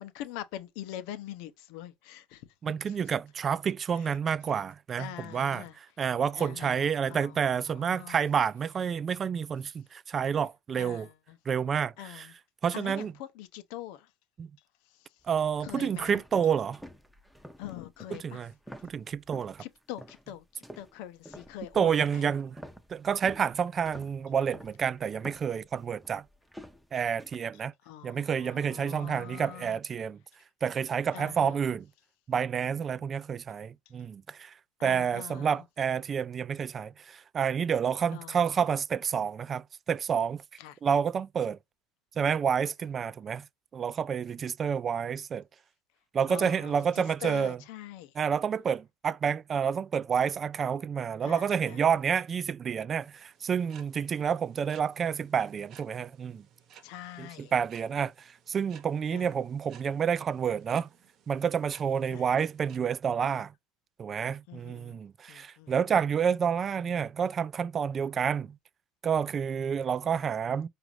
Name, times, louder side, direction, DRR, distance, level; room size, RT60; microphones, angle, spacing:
voice 1, 0.0-3.0 3.9-4.2 5.0-5.8 6.4-8.2 10.8-11.4 12.0-12.3 12.7-14.1 14.9-15.2 15.6-16.2 17.6-18.4 19.6-22.3 27.8-29.8 31.1-31.8 34.8-35.6 38.1-38.5 40.6-40.8 46.3-48.1 51.2-51.9 56.8-57.5 59.1-59.3 62.1-62.4 64.5-65.0 65.3-65.7, left 12 dB, 75° left, 0.6 m, -44 dB
voice 2, 2.6-5.6 6.0-11.1 11.5-12.3 12.6-13.1 14.4-14.5 15.3-16.8 18.2-18.5 18.8-19.6 21.8-22.6 22.9-26.2 26.9-27.7 28.0-30.2 30.6-31.8 32.3-34.5 34.8-40.4 40.8-41.6 42.2-43.5 43.7-45.4 46.1-47.6 48.2-56.4 57.2-60.9 61.3-63.5 64.0-68.6 69.0-70.7, right 7 dB, 35° right, 0.3 m, -29 dB
sound 1, 15.2-19.6 20.0-20.3 20.6-27.4, equal, ahead, 0.6 m, -49 dB
sound 2, 52.9-62.8, right 8 dB, 55° right, 0.9 m, -58 dB
4.9 x 2.5 x 2.9 m
supercardioid pair, 85°, 0 cm